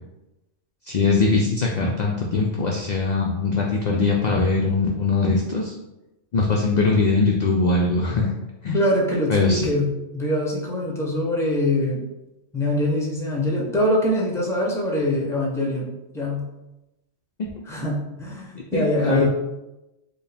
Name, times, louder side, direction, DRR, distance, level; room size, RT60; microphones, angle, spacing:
voice 1, 0.9-5.7 6.3-8.3 8.6-8.8 9.3-9.6 17.4-17.5 18.7-19.3, left 3 dB, 65° left, -1 dB, 0.4 m, -21 dB
voice 2, 8.7-12.1 12.5-16.5 17.7-19.3, left 1 dB, 5° left, -2 dB, 0.6 m, -23 dB
4.6 x 2.2 x 3.4 m, 0.96 s
omnidirectional pair, 1.3 m